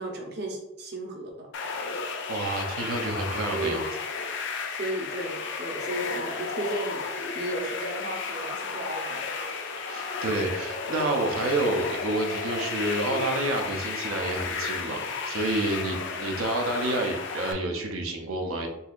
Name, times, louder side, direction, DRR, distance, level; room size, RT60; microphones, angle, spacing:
voice 1, 0.0-1.5 3.5-3.9 4.7-9.3, right 1 dB, 50° right, 0 dB, 0.8 m, -34 dB
sound 1, 1.5-17.5, left 4 dB, 55° left, 0.4 m, -33 dB
voice 2, 2.3-3.9 9.9-18.7, right 2 dB, 85° right, 2 dB, 0.7 m, -29 dB
3.9 x 2.8 x 2.4 m, 0.96 s
head